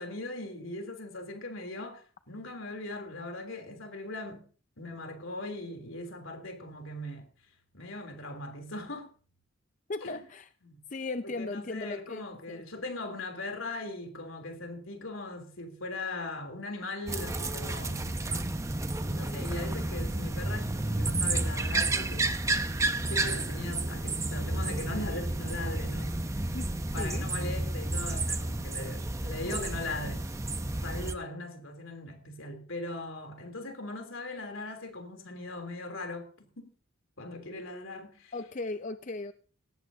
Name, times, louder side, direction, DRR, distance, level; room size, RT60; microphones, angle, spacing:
voice 1, 0.0-4.4 4.8-7.3 7.7-9.1 10.0-10.2 10.6-10.8 11.2-18.2 18.9-22.4 22.8-26.2 26.9-30.3 30.8-36.7 37.2-38.3, left 2 dB, 80° left, 3.2 m, -39 dB
voice 2, 9.9-10.5 10.9-12.6 26.5-26.7 27.0-27.3 38.3-39.3, left 3 dB, 40° left, 0.5 m, -37 dB
sound 1, 17.1-31.1, right 2 dB, 15° right, 0.7 m, -31 dB
17.5 x 15.0 x 2.8 m
head